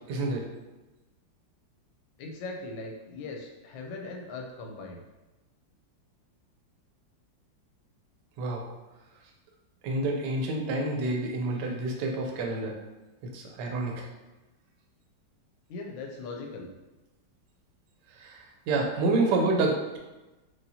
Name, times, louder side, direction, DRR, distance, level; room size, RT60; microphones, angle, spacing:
voice 1, 0.1-0.5 8.4-8.6 9.8-12.8 13.3-14.0 18.2-20.0, right 2 dB, 75° right, 1 dB, 1.2 m, -28 dB
voice 2, 2.2-5.0 15.7-16.7, left 3 dB, 90° left, 1 dB, 1.4 m, -39 dB
4.7 x 2.8 x 2.7 m, 1.1 s
omnidirectional pair, 2.0 m